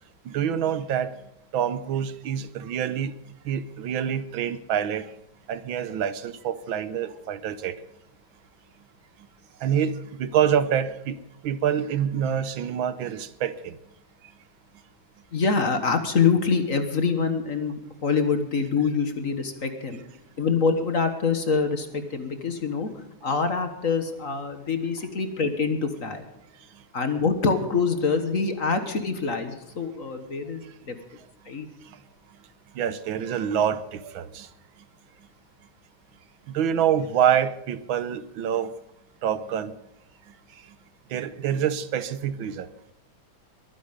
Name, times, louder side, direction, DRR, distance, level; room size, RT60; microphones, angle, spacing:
voice 1, 0.2-1.1 1.5-3.1 3.4-5.1 5.5-7.8 9.6-11.2 11.4-13.8 31.9-32.0 32.7-34.5 36.5-38.7 39.2-39.7 41.1-42.7, right 9 dB, 75° right, 14 dB, 1.6 m, -26 dB
voice 2, 15.3-20.0 20.4-26.3 26.9-31.0 31.4-31.7, left 5 dB, 45° left, 8 dB, 1.6 m, -25 dB
22.0 x 10.0 x 5.2 m, 0.84 s
omnidirectional pair, 2.3 m